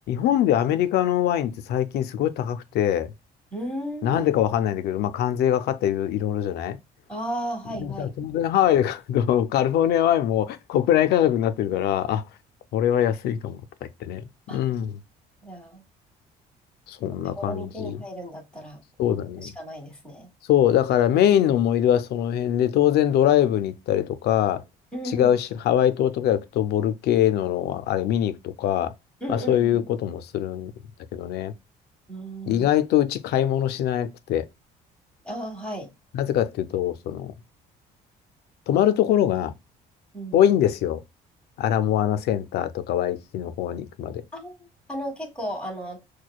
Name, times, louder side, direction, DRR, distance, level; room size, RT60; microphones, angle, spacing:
voice 1, 0.1-3.1 4.0-6.8 7.8-12.2 12.7-13.6 14.0-15.0 16.9-18.0 19.0-19.5 20.5-24.6 25.1-28.9 29.3-30.7 31.1-31.5 32.5-34.4 36.1-37.3 38.7-39.5 40.3-41.0 41.6-44.2, left 11 dB, 70° left, 0.5 m, -23 dB
voice 2, 3.5-4.2 7.1-8.1 14.5-14.6 15.4-15.8 17.2-18.8 19.1-20.3 24.9-25.4 29.2-29.9 32.1-32.7 35.2-35.9 40.1-40.4 44.3-46.0, equal, 5° left, 1.5 m, -34 dB
6.2 x 2.2 x 2.3 m
cardioid pair, 110°, 17 cm